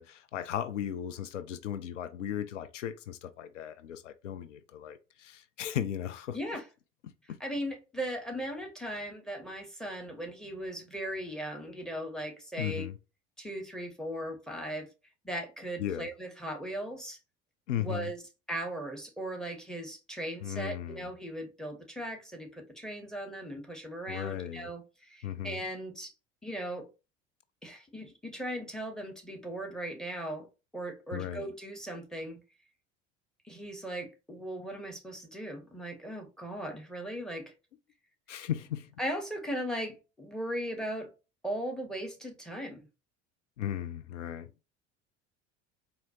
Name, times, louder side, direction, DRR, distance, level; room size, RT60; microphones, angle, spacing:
voice 1, 0.0-6.4 7.3-7.4 12.6-12.9 15.8-16.1 17.7-18.1 20.4-21.0 24.1-24.7 25.2-25.6 31.1-31.5 38.3-38.9 43.6-44.5, left 10 dB, 85° left, 0.5 m, -36 dB
voice 2, 6.3-6.7 7.2-12.9 13.4-14.9 15.2-17.2 17.8-18.2 18.5-26.1 26.4-26.9 27.6-32.4 33.4-37.5 39.0-41.1 41.4-42.8, right 1 dB, ahead, 1.3 m, -38 dB
4.3 x 2.8 x 2.8 m
hypercardioid pair, 70°, 36 cm